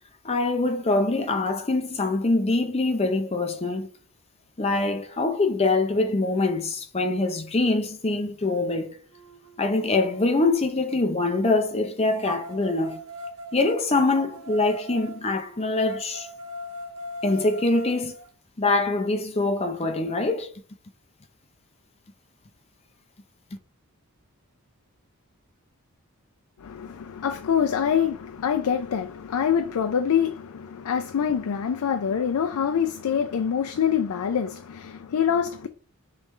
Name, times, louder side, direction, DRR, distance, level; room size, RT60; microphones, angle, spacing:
voice 1, 0.2-3.9 4.6-9.0 9.6-13.0 13.5-16.3 17.2-18.1 18.6-20.5, left 2 dB, 25° left, 0.6 m, -24 dB
sound 1, 8.4-8.5 9.1-11.0 12.2-18.3, equal, 75° right, 0.6 m, -40 dB
voice 2, 26.6-35.7, left 8 dB, 75° left, 0.4 m, -25 dB
5.0 x 3.2 x 3.2 m
head